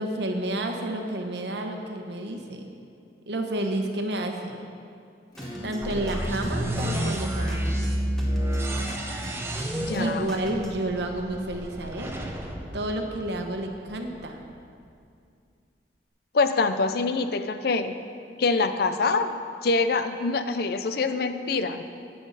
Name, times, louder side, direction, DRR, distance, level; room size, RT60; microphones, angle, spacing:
voice 1, 0.0-2.6 3.3-4.6 5.6-8.0 9.9-12.1 12.7-14.4, right 1 dB, 70° right, 3 dB, 1.1 m, -30 dB
Acoustic guitar / Strum, 5.3-10.2, left 2 dB, 25° left, 2.8 m, -45 dB
sound 1, 5.4-10.8, equal, 5° left, 1.3 m, -41 dB
sound 2, 5.8-13.7, right 1 dB, 15° right, 0.8 m, -30 dB
voice 2, 9.8-10.3 16.3-17.9 18.4-21.8, left 3 dB, 60° left, 10 dB, 0.5 m, -25 dB
12.5 x 8.5 x 4.1 m, 2.4 s
head